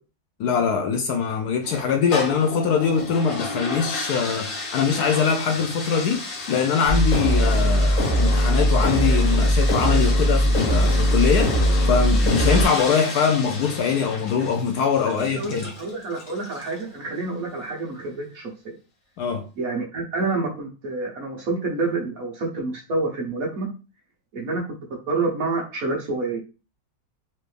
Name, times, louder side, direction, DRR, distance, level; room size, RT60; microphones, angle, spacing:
voice 1, 0.4-6.2 6.5-11.6 11.9-15.7 19.2-19.5, left 6 dB, 70° left, 1.0 m, -22 dB
sound 1, 1.6-16.9, left 3 dB, 90° left, 1.7 m, -33 dB
sound 2, 6.9-12.6, equal, 55° left, 1.2 m, -19 dB
voice 2, 15.1-18.7 19.6-23.7 24.3-24.6 24.9-26.4, right 3 dB, 55° right, 1.4 m, -28 dB
4.4 x 2.7 x 3.3 m
omnidirectional pair, 1.9 m